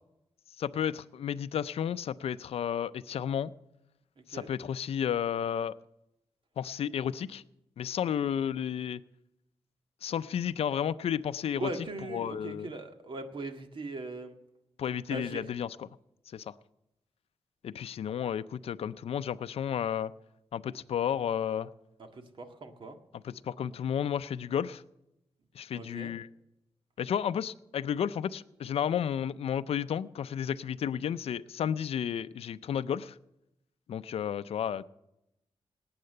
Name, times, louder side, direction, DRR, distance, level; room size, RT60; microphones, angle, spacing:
voice 1, 0.6-3.5 4.3-5.7 6.6-7.4 7.8-9.0 10.0-11.7 12.1-12.7 14.8-15.8 16.3-16.5 17.6-20.1 20.5-21.7 23.2-24.8 25.6-26.3 27.0-33.1 33.9-34.9, left 9 dB, 80° left, 14 dB, 0.5 m, -32 dB
voice 2, 11.5-14.3 15.1-15.5 22.1-23.0 25.7-26.1, right 2 dB, 55° right, 6 dB, 1.8 m, -39 dB
18.5 x 8.8 x 6.7 m, 0.88 s
cardioid pair, 90°, 10 cm